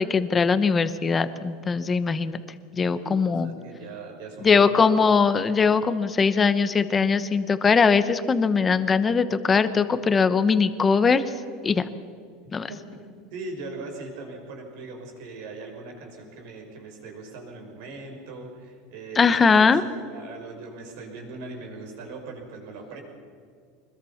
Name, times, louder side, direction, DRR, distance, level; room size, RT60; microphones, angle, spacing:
voice 1, 0.0-2.4 2.7-3.5 4.4-11.2 11.6-11.9 12.5-12.7 19.2-19.8, left 5 dB, 15° left, 12 dB, 0.9 m, -21 dB
voice 2, 3.0-4.9 12.7-13.0 13.3-23.0, right 3 dB, 60° right, 2 dB, 6.1 m, -40 dB
25.5 x 21.0 x 5.8 m, 2.1 s
supercardioid pair, 165°, 0 cm